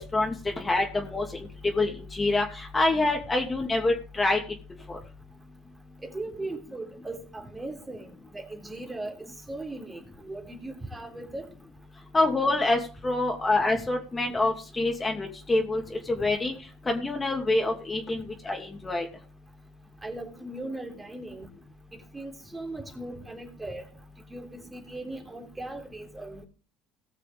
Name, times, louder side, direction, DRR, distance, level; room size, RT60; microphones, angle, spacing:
voice 1, 0.0-4.4 4.9-5.0 12.1-16.5 16.8-19.1, left 2 dB, 20° left, 2.7 m, -26 dB
voice 2, 6.0-11.5 16.2-16.3 20.0-21.5 22.1-23.8 24.3-26.4, right 2 dB, 15° right, 3.5 m, -38 dB
19.5 x 6.6 x 3.6 m
supercardioid pair, 80°, 0 cm